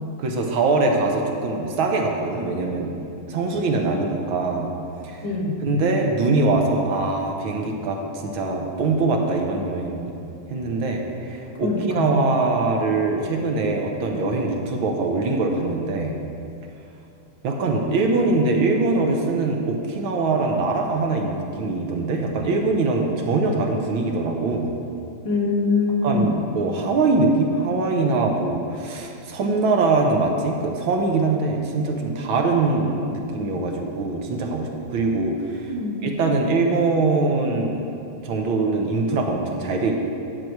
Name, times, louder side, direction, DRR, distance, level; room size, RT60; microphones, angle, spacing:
voice 1, 0.2-4.7 5.0-5.2 5.6-10.1 10.5-16.1 17.4-24.7 26.0-35.7 36.0-37.9 38.2-39.9, right 3 dB, 75° right, 1 dB, 1.8 m, -23 dB
voice 2, 5.2-5.6 11.6-12.1 25.2-26.3 35.7-36.1, left 3 dB, 60° left, 0 dB, 1.5 m, -23 dB
10.0 x 4.6 x 7.8 m, 2.6 s
omnidirectional pair, 2.3 m